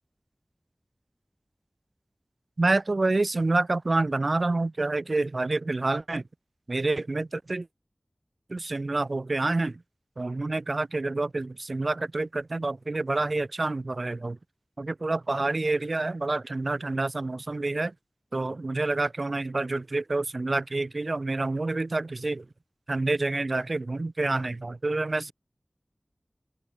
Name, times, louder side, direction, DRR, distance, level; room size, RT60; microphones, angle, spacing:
voice 1, 2.6-6.2 6.7-7.7 8.5-9.8 10.2-14.4 14.8-17.9 18.3-22.4 22.9-25.3, right 2 dB, 70° right, 1.6 m, -28 dB
open air
wide cardioid pair, 40°, 0 cm